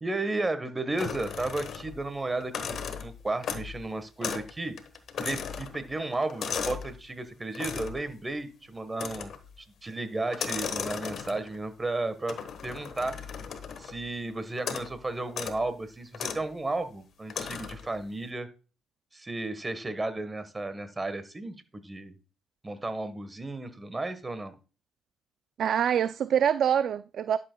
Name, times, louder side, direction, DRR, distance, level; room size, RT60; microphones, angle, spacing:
voice 1, 0.0-4.7 5.2-9.3 9.6-12.4 12.6-13.2 13.8-18.5 19.1-22.1 22.6-24.6, right 2 dB, 20° right, 1.3 m, -33 dB
sound 1, 1.0-2.0 2.4-3.8 4.2-4.5 4.8-6.9 7.5-8.0 8.9-9.5 10.3-11.6 12.3-14.0 14.6-14.9 15.3-15.6 16.1-16.4 17.3-17.9, left 6 dB, 65° left, 1.2 m, -36 dB
voice 2, 25.6-27.4, right 9 dB, 65° right, 0.3 m, -25 dB
11.5 x 6.8 x 2.3 m
cardioid pair, 85°, 0 cm